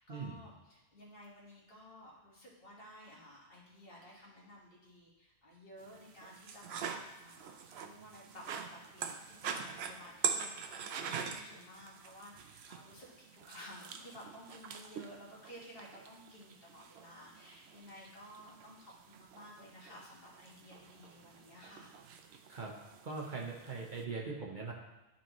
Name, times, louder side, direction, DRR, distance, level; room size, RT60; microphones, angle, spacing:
voice 1, 0.0-6.8 7.2-8.5 8.9-21.9, left 1 dB, 60° left, -4 dB, 1.8 m, -54 dB
sound 1, 5.8-24.0, right 7 dB, 75° right, 0.8 m, -44 dB
voice 2, 23.0-24.7, right 4 dB, 50° right, -1 dB, 1.0 m, -41 dB
11.5 x 4.2 x 3.0 m, 1.1 s
omnidirectional pair, 1.1 m